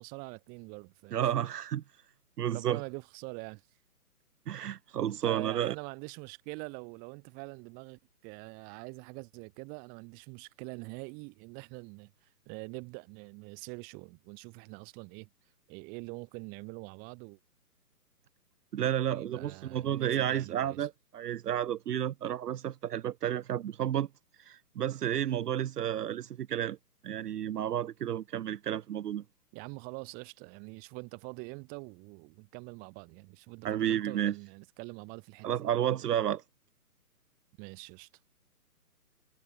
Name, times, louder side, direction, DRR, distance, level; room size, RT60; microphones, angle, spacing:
voice 1, 0.0-1.2 2.5-3.6 5.2-15.3 15.7-17.4 19.1-20.9 29.5-35.7 37.6-38.1, right 32 dB, 20° right, 1.8 m, -44 dB
voice 2, 1.1-1.8 2.4-2.8 4.5-5.7 18.7-24.1 24.4-26.8 27.0-29.2 33.6-34.3 35.4-36.4, right 10 dB, 75° right, 0.6 m, -31 dB
hypercardioid pair, 145°, 47 cm